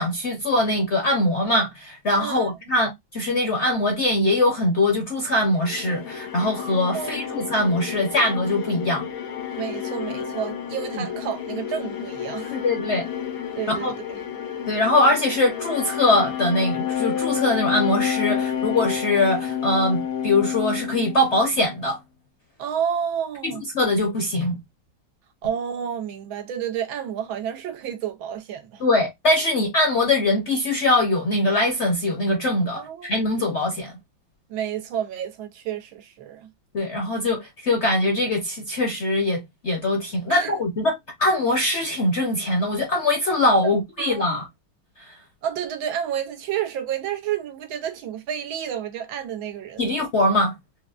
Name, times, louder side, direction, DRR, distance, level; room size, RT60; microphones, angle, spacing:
voice 1, 0.0-9.1 10.9-11.0 12.5-13.0 13.7-13.9 14.7-22.0 23.7-24.6 28.8-33.9 36.7-40.9 41.2-44.4 45.0-45.1 49.8-50.5, left 2 dB, 55° left, 0.8 m, -22 dB
voice 2, 2.2-2.5 6.9-7.4 9.6-12.6 13.6-14.2 22.6-23.6 25.4-28.8 32.8-33.1 34.5-36.5 40.3-40.5 43.6-44.4 45.4-49.9, right 9 dB, 85° right, 1.6 m, -30 dB
sound 1, 5.4-21.7, left 8 dB, 80° left, 1.6 m, -30 dB
4.7 x 2.1 x 2.4 m
omnidirectional pair, 2.1 m